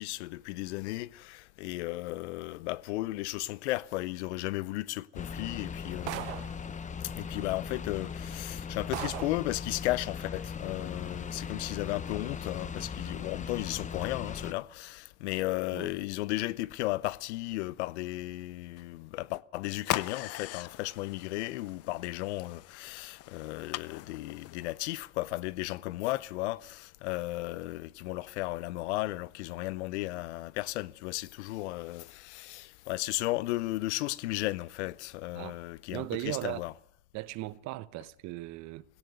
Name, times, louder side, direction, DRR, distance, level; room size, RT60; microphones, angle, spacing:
voice 1, 0.0-6.3 7.1-36.7, left 18 dB, 80° left, 0.8 m, -35 dB
sound 1, 5.2-14.5, left 6 dB, 20° left, 1.2 m, -39 dB
sound 2, 6.1-6.6 7.7-7.8 8.3-8.4 8.9-9.5, right 16 dB, 90° right, 1.1 m, -38 dB
sound 3, 19.8-25.0, left 15 dB, 45° left, 0.8 m, -40 dB
voice 2, 35.9-36.6 37.1-38.8, right 18 dB, 55° right, 1.0 m, -37 dB
17.0 x 16.0 x 9.4 m
supercardioid pair, 110°, 34 cm